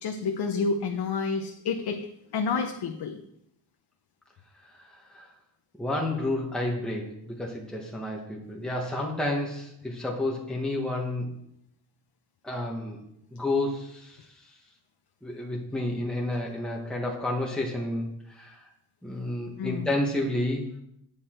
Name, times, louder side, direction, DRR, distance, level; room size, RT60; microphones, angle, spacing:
voice 1, 0.0-2.1 2.3-3.2 19.6-19.9, left 4 dB, 75° left, 5 dB, 0.9 m, -29 dB
voice 2, 4.5-5.3 5.8-11.3 12.4-13.0 13.3-14.5 15.2-18.7 19.0-20.7, left 1 dB, ahead, -2 dB, 1.3 m, -31 dB
9.5 x 8.3 x 4.4 m, 0.75 s
wide cardioid pair, 175°, 40 cm